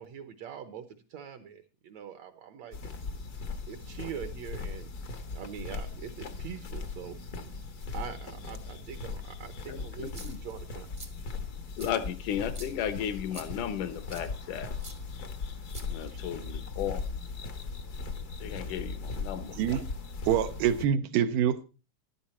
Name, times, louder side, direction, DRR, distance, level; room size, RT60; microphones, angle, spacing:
voice 1, 0.0-2.8 3.7-4.9 5.3-7.2 7.9-10.9 16.1-16.5 18.5-18.6, right 8 dB, 65° right, 1.9 m, -43 dB
sound 1, 2.7-20.8, left 4 dB, 55° left, 1.0 m, -39 dB
voice 2, 9.7-10.4 11.8-14.7 15.9-17.2 18.4-19.6, left 9 dB, 75° left, 2.5 m, -35 dB
sound 2, 10.0-10.5 10.9-11.1 11.8-11.9 12.5-12.7 13.3-13.5 14.1-14.3 14.8-14.9 15.7-16.3, right 2 dB, 25° right, 0.8 m, -46 dB
voice 3, 20.3-21.6, right 9 dB, 80° right, 2.4 m, -26 dB
14.0 x 11.0 x 4.3 m
omnidirectional pair, 3.8 m